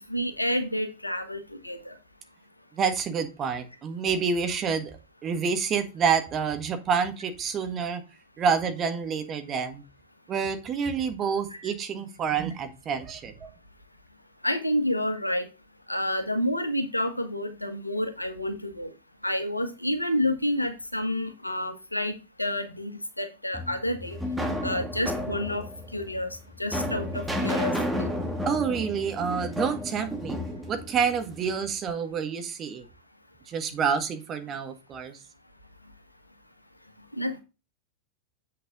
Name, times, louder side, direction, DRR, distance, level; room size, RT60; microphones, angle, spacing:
voice 1, 0.0-1.9 11.5-11.7 14.4-15.5 15.9-18.9 19.2-22.9 23.2-24.2 24.6-25.6 25.9-27.7 28.0-28.1 37.1-37.4, left 1 dB, 85° left, 8 dB, 1.3 m, -29 dB
voice 2, 2.7-4.9 5.2-8.0 8.4-9.8 10.3-13.5 28.4-30.4 30.7-32.8 33.5-35.2, right 6 dB, 30° right, 7 dB, 1.6 m, -28 dB
sound 1, 23.5-31.7, left 1 dB, 5° right, 1.9 m, -32 dB
7.8 x 6.6 x 3.6 m, 0.29 s
figure-of-eight pair, 90°, 0 cm